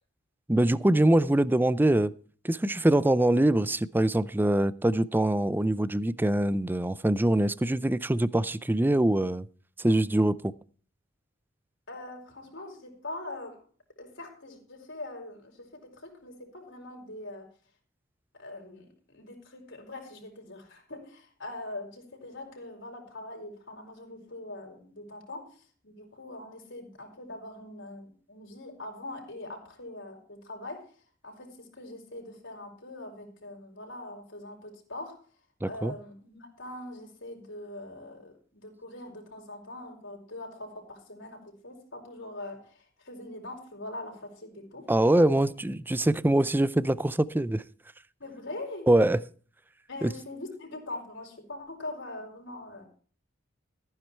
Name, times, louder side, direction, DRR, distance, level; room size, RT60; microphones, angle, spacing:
voice 1, 0.5-2.1 2.4-9.5 9.8-10.5 35.6-35.9 44.9-47.6 48.9-49.2 50.0-50.1, right 1 dB, 10° right, 0.4 m, -24 dB
voice 2, 11.9-13.6 14.0-17.5 18.4-30.9 31.2-35.2 35.7-44.9 48.2-48.9 49.9-52.8, left 2 dB, 65° left, 4.8 m, -42 dB
14.5 x 9.6 x 4.4 m
head